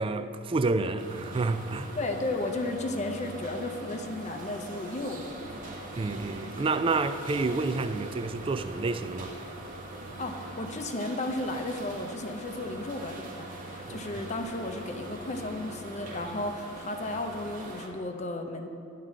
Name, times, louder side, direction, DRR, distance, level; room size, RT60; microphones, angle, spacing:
voice 1, 0.0-2.0 6.0-9.3 13.9-14.0, right 3 dB, 25° right, 0.3 m, -29 dB
sound 1, 1.0-17.9, right 2 dB, 40° right, 1.0 m, -42 dB
voice 2, 2.0-5.7 10.2-18.7, left 2 dB, 35° left, 0.6 m, -34 dB
11.0 x 3.8 x 7.4 m
head